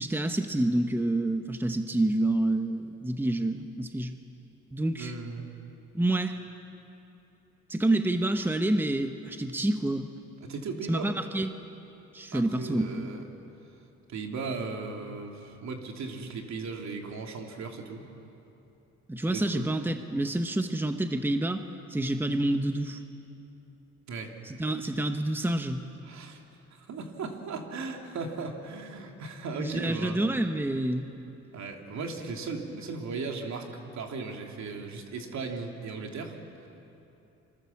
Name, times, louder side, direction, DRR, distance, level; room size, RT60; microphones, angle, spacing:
voice 1, 0.0-4.1 4.7-5.1 5.9-6.4 7.7-10.1 10.9-11.5 12.1-13.1 19.1-21.6 21.9-23.0 24.4-25.8 29.6-31.1, right 1 dB, 5° right, 7 dB, 1.2 m, -28 dB
voice 2, 5.0-5.4 10.4-11.1 12.3-13.2 14.1-18.1 19.3-19.7 24.1-24.3 26.1-26.4 26.8-30.2 31.5-36.4, right 4 dB, 65° right, 2 dB, 3.2 m, -37 dB
28.0 x 25.5 x 7.3 m, 2.9 s
cardioid pair, 90°, 30 cm